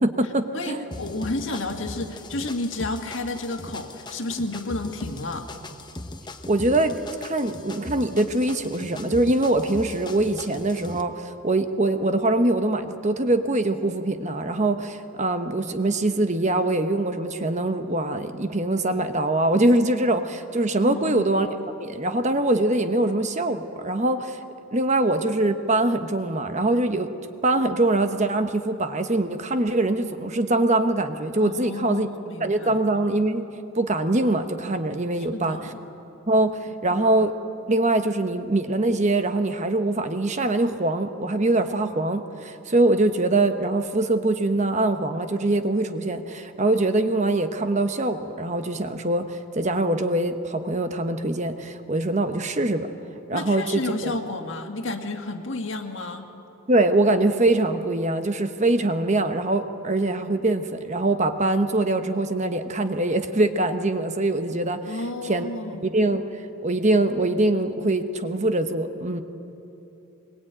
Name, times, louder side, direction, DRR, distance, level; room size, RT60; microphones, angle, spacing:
voice 1, 0.0-0.9 6.5-21.5 21.8-24.4 24.7-27.1 27.4-32.1 32.4-33.4 33.7-35.7 36.3-37.3 37.7-52.9 53.3-54.2 56.7-65.0 65.2-65.5 65.8-69.2, right 2 dB, 35° right, 8 dB, 1.0 m, -23 dB
voice 2, 0.5-5.5 20.8-21.3 31.4-32.8 35.2-35.8 36.9-37.0 53.3-56.3 64.9-65.9, left 2 dB, 60° left, 5 dB, 2.0 m, -31 dB
sound 1, 0.9-11.0, left 2 dB, 20° left, 1.0 m, -39 dB
22.0 x 22.0 x 9.0 m, 2.9 s
head